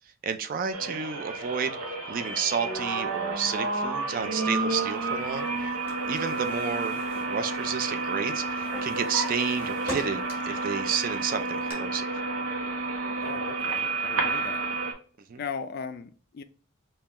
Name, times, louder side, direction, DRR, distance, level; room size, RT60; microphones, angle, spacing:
voice 1, 0.2-1.8 2.1-5.5 6.1-12.0 15.3-15.4, right 6 dB, 40° right, 0.3 m, -31 dB
sound 1, 0.7-14.9, right 3 dB, 80° right, 0.8 m, -30 dB
Drawer open or close, 5.5-8.0 8.3-10.6 11.0-11.7, right 1 dB, 10° right, 1.4 m, -39 dB
voice 2, 13.2-14.7 15.4-16.4, left 6 dB, 45° left, 0.3 m, -38 dB
5.3 x 2.3 x 2.9 m
head